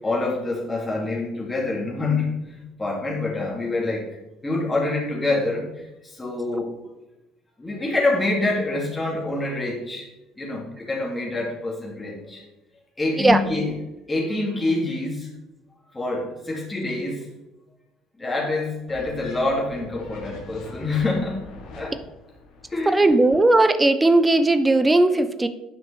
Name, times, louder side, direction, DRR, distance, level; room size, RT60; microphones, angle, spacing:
voice 1, 0.0-4.2 4.4-6.8 7.6-10.1 10.4-12.4 13.0-13.7 14.1-15.3 15.9-17.3 18.2-21.4 21.7-22.0 22.7-23.2, left 2 dB, 15° left, -3 dB, 2.4 m, -26 dB
sound 1, 18.9-22.9, left 2 dB, 65° left, 1.7 m, -42 dB
voice 2, 22.9-25.5, right 2 dB, 15° right, 11 dB, 0.6 m, -17 dB
8.4 x 5.8 x 3.4 m, 0.98 s
hypercardioid pair, 60°, 0 cm